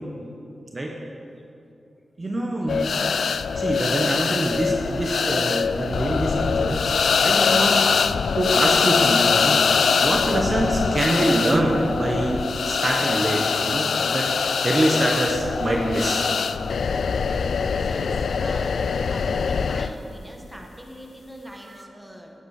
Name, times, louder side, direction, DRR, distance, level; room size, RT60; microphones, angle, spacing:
voice 1, 2.2-3.0 3.5-7.9 8.4-16.3 21.6-21.9, right 1 dB, 25° right, 0 dB, 1.1 m, -25 dB
sound 1, 2.7-19.9, left 5 dB, 65° left, 0.4 m, -23 dB
voice 2, 17.8-18.8 19.1-22.3, equal, 5° right, 1 dB, 1.5 m, -42 dB
16.5 x 8.3 x 6.6 m, 2.7 s
wide cardioid pair, 155°, 0 cm